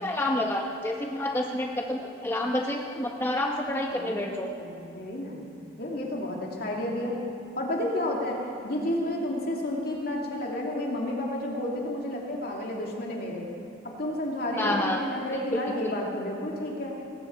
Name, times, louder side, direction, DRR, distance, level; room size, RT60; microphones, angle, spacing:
voice 1, 0.0-4.5 14.6-15.0 15.5-15.6, left 1 dB, 15° left, 0 dB, 0.9 m, -28 dB
voice 2, 3.9-5.4 5.8-7.2 7.6-13.5 14.0-16.9, left 1 dB, 55° left, -1 dB, 2.6 m, -31 dB
19.0 x 16.5 x 4.6 m, 2.7 s
head